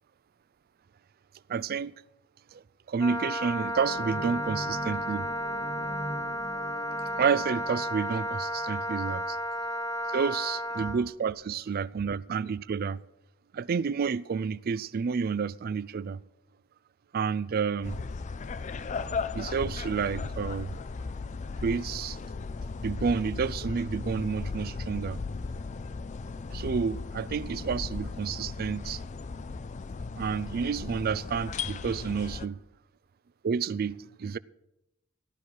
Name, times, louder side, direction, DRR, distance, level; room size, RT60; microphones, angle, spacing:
voice 1, 1.5-1.9 2.5-2.6 2.9-5.3 7.2-9.2 10.1-13.0 13.5-16.2 17.1-18.0 19.3-20.8 21.6-22.2 22.8-25.2 26.5-29.0 30.2-32.6 33.4-34.4, right 6 dB, 45° right, 0.4 m, -30 dB
Wind instrument woodwind instrument, 3.0-11.0, equal, 15° left, 1.2 m, -33 dB
sound 1, 3.8-9.1, equal, 75° left, 2.4 m, -42 dB
sound 2, 17.8-32.5, left 4 dB, 35° left, 0.4 m, -36 dB
15.0 x 12.0 x 4.7 m
head